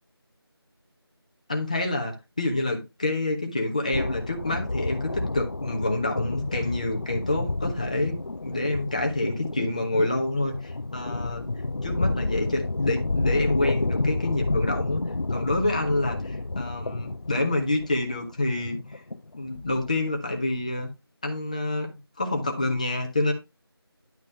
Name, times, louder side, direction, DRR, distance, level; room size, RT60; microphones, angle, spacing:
voice 1, 1.5-11.5 11.8-15.0 15.3-19.0 19.4-20.9 21.2-21.9 22.2-23.3, left 2 dB, 15° left, 0.9 m, -27 dB
sound 1, 3.9-20.1, left 2 dB, 50° left, 0.6 m, -30 dB
10.5 x 3.9 x 4.5 m
figure-of-eight pair, 175°, 13 cm